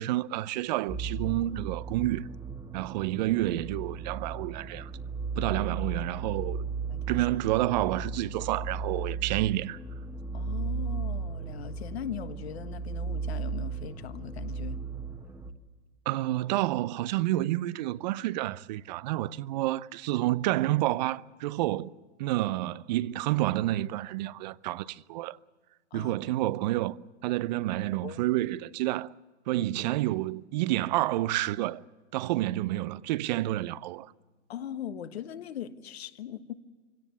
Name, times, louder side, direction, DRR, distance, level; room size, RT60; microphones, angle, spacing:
voice 1, 0.0-2.3 2.7-4.9 5.4-6.6 7.1-9.8 16.1-21.9 22.2-25.4 25.9-27.0 27.2-29.1 29.5-31.8 32.1-34.1, right 16 dB, 40° right, 0.6 m, -29 dB
sound 1, 0.9-15.5, right 5 dB, 10° right, 1.3 m, -35 dB
voice 2, 6.9-7.3 10.3-14.8 25.9-26.1 28.0-28.2 29.6-29.7 34.5-36.5, left 9 dB, 60° left, 1.5 m, -40 dB
25.5 x 17.0 x 8.2 m
hypercardioid pair, 115°, 35 cm